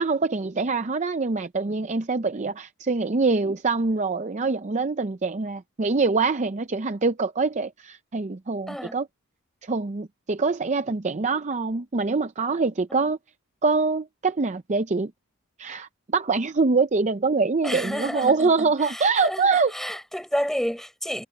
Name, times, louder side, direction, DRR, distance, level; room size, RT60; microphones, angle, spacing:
voice 1, 0.0-9.0 9.6-13.2 13.6-15.1 15.6-19.7, right 4 dB, 30° right, 0.5 m, -24 dB
voice 2, 8.7-9.0 12.9-13.1 17.6-21.2, equal, ahead, 6.1 m, -30 dB
head